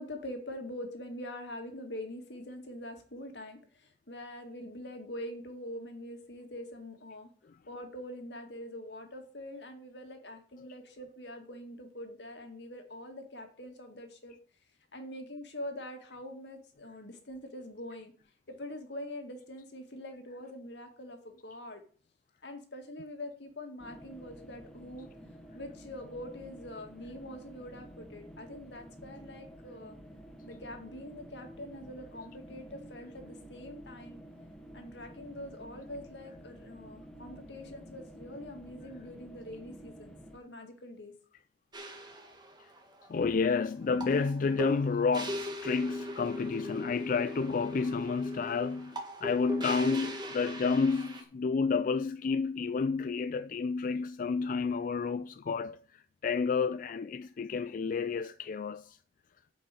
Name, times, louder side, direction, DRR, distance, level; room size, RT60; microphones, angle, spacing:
voice 1, 0.0-7.3 7.7-14.3 14.9-18.1 18.6-21.8 22.4-25.1 25.5-30.0 30.5-34.2 34.7-41.1, left 1 dB, 80° left, 2.0 m, -44 dB
sound 1, 23.8-40.4, equal, 5° left, 1.3 m, -50 dB
sound 2, 41.7-51.2, equal, 25° right, 1.6 m, -40 dB
voice 2, 43.1-55.8 56.2-59.0, left 5 dB, 50° left, 0.4 m, -30 dB
8.4 x 5.3 x 7.5 m
head